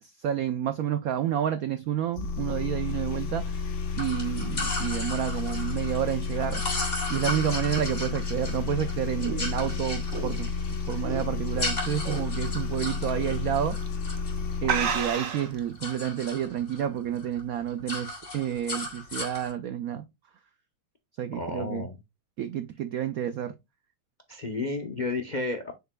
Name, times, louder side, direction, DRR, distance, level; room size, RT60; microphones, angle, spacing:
voice 1, 0.0-6.6 7.1-10.5 10.9-13.8 14.6-20.0 21.2-21.9 22.4-23.6, right 10 dB, 85° right, 0.7 m, -30 dB
sound 1, 2.1-15.1, left 5 dB, 60° left, 1.7 m, -31 dB
sound 2, 3.9-15.0 15.3-16.9 17.2-17.4 17.7-19.5, left 2 dB, 40° left, 3.8 m, -36 dB
sound 3, 8.5-11.6 12.0-12.4 12.7-12.8 13.7-13.9 14.2-14.3 14.6-15.6, right 7 dB, 50° right, 1.2 m, -31 dB
voice 2, 21.3-21.9 24.3-25.7, left 3 dB, 85° left, 0.4 m, -31 dB
6.9 x 6.6 x 2.2 m
omnidirectional pair, 2.2 m